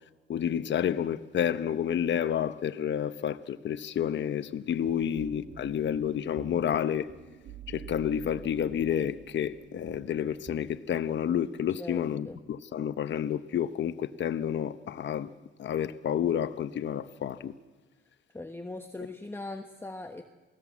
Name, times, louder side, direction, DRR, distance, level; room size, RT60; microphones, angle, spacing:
voice 1, 0.3-7.1 7.7-15.3 15.6-17.5, left 9 dB, 60° left, 0.9 m, -30 dB
sound 1, 4.8-10.8, right 7 dB, 60° right, 2.2 m, -48 dB
voice 2, 11.8-12.4 18.3-20.3, left 2 dB, 10° left, 1.2 m, -40 dB
28.0 x 18.5 x 7.4 m
cardioid pair, 110°, 21 cm